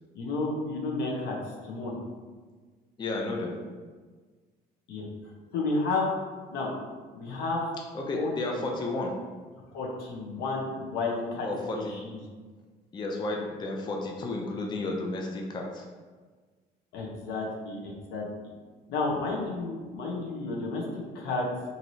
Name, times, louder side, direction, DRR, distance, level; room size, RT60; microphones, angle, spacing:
voice 1, 0.1-1.4 1.6-2.0 4.9-5.1 5.5-6.1 6.5-6.7 7.1-7.7 8.1-8.7 9.7-11.5 11.7-12.2 16.9-18.5 18.9-21.5, left 3 dB, 80° left, -2 dB, 0.7 m, -31 dB
voice 2, 3.0-3.5 7.9-9.1 11.4-11.8 12.9-15.9, left 2 dB, 25° left, 0 dB, 0.4 m, -32 dB
3.0 x 2.7 x 2.6 m, 1.4 s
cardioid pair, 110°, 17 cm